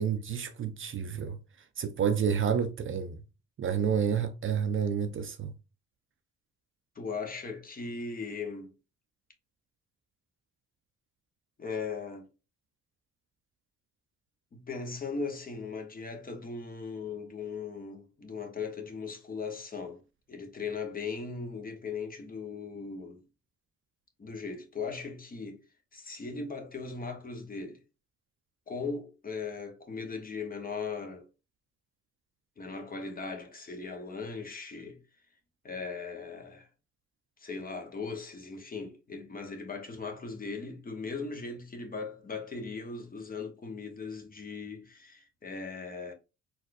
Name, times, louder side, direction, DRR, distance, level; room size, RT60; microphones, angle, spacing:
voice 1, 0.0-1.4 1.8-3.2 3.6-5.5, right 7 dB, 45° right, 0.5 m, -29 dB
voice 2, 6.9-8.7 11.6-12.3 14.5-20.0 20.3-23.2 24.2-25.6 25.9-27.8 28.7-31.3 32.6-35.0 35.6-36.7 37.4-46.1, left 4 dB, 30° left, 0.9 m, -38 dB
4.0 x 2.4 x 2.5 m
cardioid pair, 90°, 30 cm